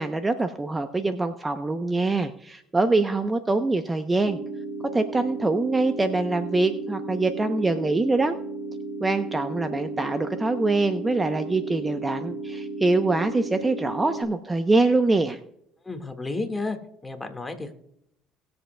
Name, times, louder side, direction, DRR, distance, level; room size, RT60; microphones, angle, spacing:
voice 1, 0.0-4.4 4.9-8.4 9.0-15.4, right 3 dB, 15° right, 9 dB, 0.7 m, -24 dB
sound 1, 4.2-14.2, right 3 dB, 55° right, 2.3 m, -34 dB
voice 2, 15.8-16.8 17.0-17.7, left 3 dB, 15° left, 6 dB, 1.8 m, -31 dB
20.0 x 7.8 x 2.2 m, 0.77 s
supercardioid pair, 85°, 0 cm